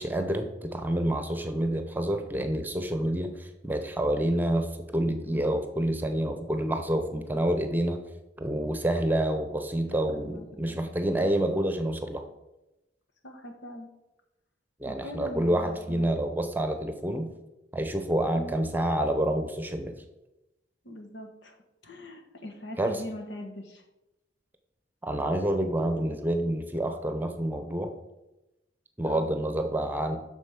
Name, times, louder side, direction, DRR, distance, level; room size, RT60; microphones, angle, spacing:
voice 1, 0.0-8.0 8.4-12.2 14.8-17.3 17.7-19.9 22.8-23.0 25.0-27.9 29.0-30.2, right 1 dB, 10° right, 6 dB, 0.8 m, -28 dB
voice 2, 9.9-10.8 11.2-11.3 13.2-13.9 14.8-16.1 18.3-18.6 20.8-21.5 21.8-23.8 29.0-29.3, left 1 dB, 90° left, 3 dB, 1.4 m, -42 dB
8.2 x 6.3 x 5.9 m, 0.96 s
head